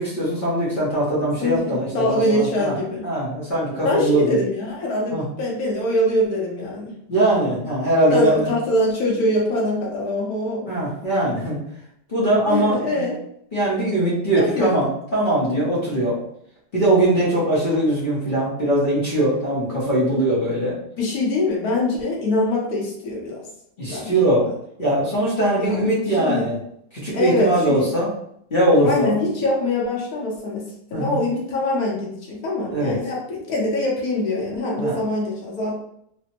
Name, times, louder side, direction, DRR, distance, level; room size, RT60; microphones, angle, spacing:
voice 1, 0.0-2.8 3.0-4.4 5.1-5.2 7.1-8.5 10.7-11.6 12.1-13.1 13.5-16.2 16.7-20.8 23.8-24.4 24.8-26.5 26.9-28.1 28.5-29.1 30.9-31.2 32.7-33.0 34.8-35.0, right 1 dB, 45° left, -7 dB, 0.7 m, -21 dB
voice 2, 1.4-3.1 3.8-6.9 8.1-10.7 12.5-13.1 14.3-14.9 21.0-23.4 23.9-24.1 25.6-26.4 27.1-27.9 28.8-30.6 30.9-35.7, left 1 dB, 60° left, -3 dB, 1.2 m, -23 dB
3.3 x 2.0 x 2.9 m, 0.72 s
omnidirectional pair, 2.0 m